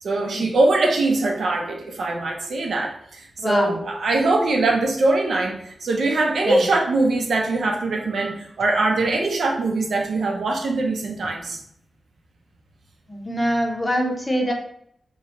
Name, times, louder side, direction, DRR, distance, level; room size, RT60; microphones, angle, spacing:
voice 1, 0.0-11.6, right 2 dB, 80° right, 1 dB, 0.8 m, -22 dB
voice 2, 3.4-3.8 6.5-6.6 13.1-14.5, equal, 15° left, 1 dB, 0.7 m, -24 dB
3.8 x 3.1 x 3.0 m, 0.68 s
wide cardioid pair, 160°, 0 cm